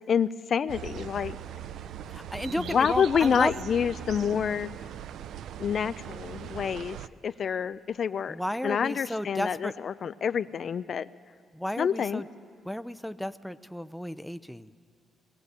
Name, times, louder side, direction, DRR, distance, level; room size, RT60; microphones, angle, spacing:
voice 1, 0.1-1.4 2.6-4.7 5.6-7.0 7.2-8.4 8.6-11.1 11.8-12.2, left 7 dB, 55° left, 14 dB, 0.5 m, -27 dB
sound 1, 0.7-7.1, right 10 dB, 75° right, 0.5 m, -40 dB
voice 2, 2.1-3.5 8.3-9.7 11.5-12.2 12.6-14.7, equal, 5° left, 12 dB, 0.6 m, -33 dB
19.5 x 17.0 x 8.2 m, 2.1 s
cardioid pair, 90°, 0 cm